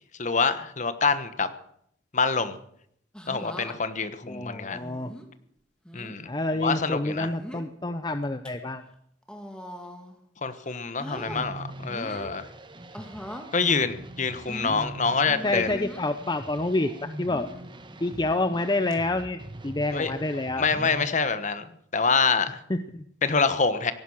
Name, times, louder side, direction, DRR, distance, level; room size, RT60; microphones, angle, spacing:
voice 1, 0.2-1.5 2.1-2.6 3.3-4.8 5.9-6.3 6.6-7.3 10.4-12.5 13.5-15.8 19.9-20.1 20.6-21.7 21.9-22.6 23.2-23.9, left 4 dB, 40° left, 11 dB, 1.2 m, -26 dB
sound 1, 3.1-3.8 4.7-5.3 5.8-6.1 7.1-7.7 8.2-8.5 9.2-10.2 10.5-11.5 11.9-12.4 12.9-13.5 14.5-16.0 17.3-17.7 18.3-18.6 18.9-19.0 20.6-21.0 22.1-22.3, equal, 5° left, 1.9 m, -41 dB
voice 2, 4.2-5.1 6.3-8.8 15.4-17.5 18.0-20.7 22.7-23.0, left 2 dB, 25° left, 9 dB, 0.7 m, -28 dB
sound 2, 11.1-21.1, right 1 dB, 25° right, 1.1 m, -42 dB
17.5 x 11.0 x 7.2 m, 0.69 s
head